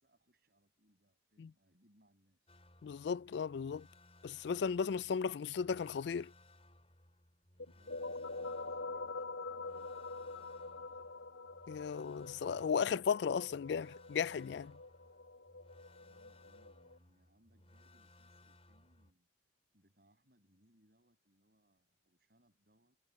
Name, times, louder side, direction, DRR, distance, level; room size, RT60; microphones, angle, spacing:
voice 1, 0.0-2.5 7.7-11.3 16.0-19.3 19.7-23.0, equal, 50° right, 7.2 m, -73 dB
sound 1, 2.5-19.1, left 2 dB, 30° left, 7.5 m, -64 dB
voice 2, 2.8-3.9 4.2-6.3 11.7-14.8, left 6 dB, 60° left, 0.3 m, -35 dB
sound 2, 7.6-17.0, left 3 dB, 80° left, 2.3 m, -46 dB
head